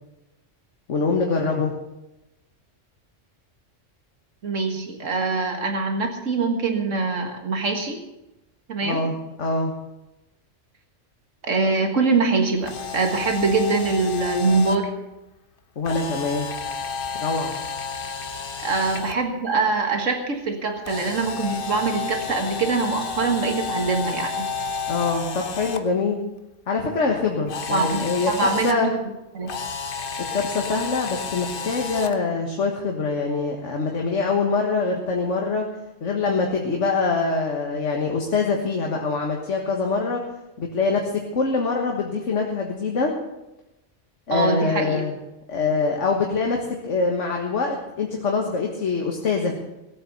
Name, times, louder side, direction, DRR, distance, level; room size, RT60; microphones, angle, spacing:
voice 1, 0.9-1.7 8.8-9.7 15.8-16.5 17.2-17.5 24.9-26.2 26.7-28.9 30.3-35.6 36.0-40.2 40.6-43.1 44.3-45.2 45.5-49.6, left 4 dB, 75° left, 1 dB, 1.8 m, -24 dB
voice 2, 4.4-8.0 8.7-9.0 11.5-14.9 18.6-24.4 27.7-29.0 29.3-29.5 44.3-45.0, right 3 dB, 90° right, 4 dB, 2.1 m, -23 dB
Camera, 12.6-14.8 15.8-19.1 20.8-25.8 27.5-28.7 29.5-32.2, left 5 dB, 50° left, 1.1 m, -31 dB
18.0 x 8.5 x 7.1 m, 0.96 s
omnidirectional pair, 1.3 m